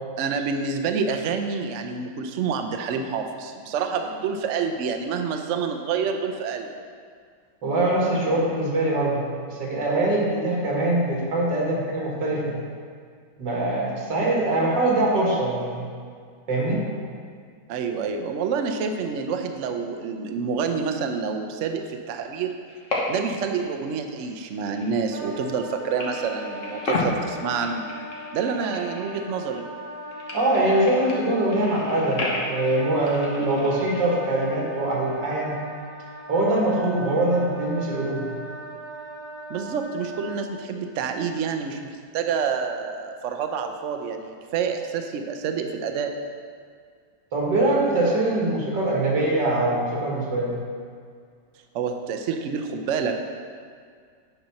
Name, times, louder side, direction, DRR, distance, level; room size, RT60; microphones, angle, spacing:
voice 1, 0.2-6.7 17.7-22.6 23.1-27.9 28.3-29.6 39.5-46.1 51.7-53.2, right 5 dB, 65° right, 5 dB, 0.7 m, -28 dB
voice 2, 7.6-12.6 13.4-15.9 16.5-16.8 30.3-35.6 36.3-38.3 47.3-50.6, right 1 dB, 85° right, -3 dB, 2.4 m, -23 dB
sound 1, 22.7-23.5 23.7-25.7 26.0-29.6 29.8-34.2, left 2 dB, 50° left, 1.6 m, -33 dB
Wind instrument woodwind instrument, 25.1-40.4, right 1 dB, 35° right, 1.9 m, -39 dB
9.3 x 4.2 x 5.8 m, 2.1 s
omnidirectional pair, 1.9 m